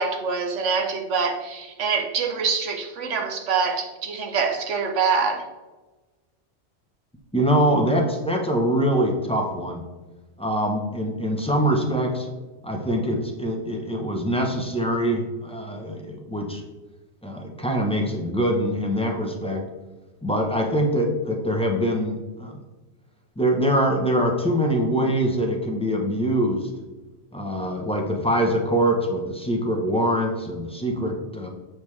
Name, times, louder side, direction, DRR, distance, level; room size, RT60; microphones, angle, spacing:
voice 1, 0.0-5.4, right 5 dB, 85° right, 1.2 m, -25 dB
voice 2, 7.3-9.9 10.4-12.3 12.6-16.6 17.2-19.6 20.2-22.6 23.4-26.7 27.3-31.5, equal, 5° left, 0.8 m, -24 dB
7.5 x 5.2 x 3.2 m
omnidirectional pair, 1.2 m